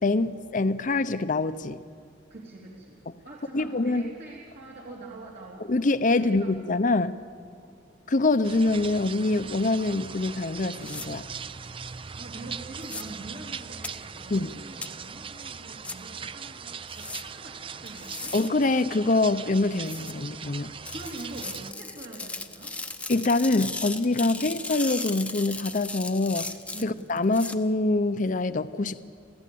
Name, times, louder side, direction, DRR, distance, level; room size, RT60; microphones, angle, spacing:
voice 1, 0.0-1.8 3.5-4.0 5.7-7.2 8.1-11.2 14.3-14.5 18.3-20.7 23.1-26.5 26.8-29.0, left 2 dB, 50° left, 13 dB, 0.7 m, -25 dB
voice 2, 2.3-5.7 6.0-6.8 7.5-7.8 12.2-18.4 20.9-22.8 24.3-24.5 26.7-27.0, right 2 dB, 60° right, -4 dB, 3.0 m, -44 dB
sound 1, 8.4-21.7, right 6 dB, 30° right, 0.5 m, -40 dB
sound 2, 10.8-11.1 12.8-13.0 13.8-13.9 14.8-14.9 15.8-16.0 16.9-17.2 17.9-18.5 19.8-20.1 20.9-27.6, left 2 dB, 10° left, 0.8 m, -37 dB
28.5 x 15.0 x 8.6 m, 2.4 s
head